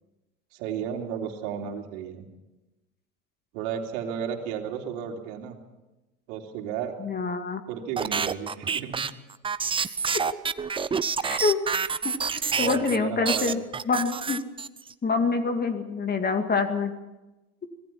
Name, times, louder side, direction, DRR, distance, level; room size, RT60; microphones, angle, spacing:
voice 1, 0.5-2.3 3.5-5.6 6.3-7.0 7.7-9.0 12.6-13.6, right 8 dB, 60° right, 2 dB, 3.5 m, -33 dB
voice 2, 7.0-7.6 11.2-11.6 12.3-14.4 15.0-16.9, left 4 dB, 20° left, 7 dB, 2.2 m, -26 dB
sound 1, 8.0-13.0 13.2-14.9, right 6 dB, 10° right, 0.6 m, -28 dB
25.5 x 19.0 x 5.9 m, 1.0 s
hypercardioid pair, 85°, 43 cm